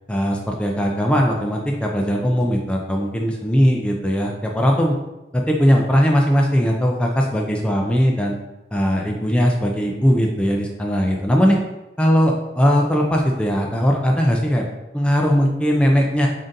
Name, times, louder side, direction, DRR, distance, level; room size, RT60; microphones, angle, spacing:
voice 1, 0.1-5.0 5.3-8.3 8.7-11.6 12.0-14.7 14.9-16.3, equal, 5° left, 0 dB, 0.4 m, -19 dB
3.8 x 3.7 x 2.6 m, 0.97 s
head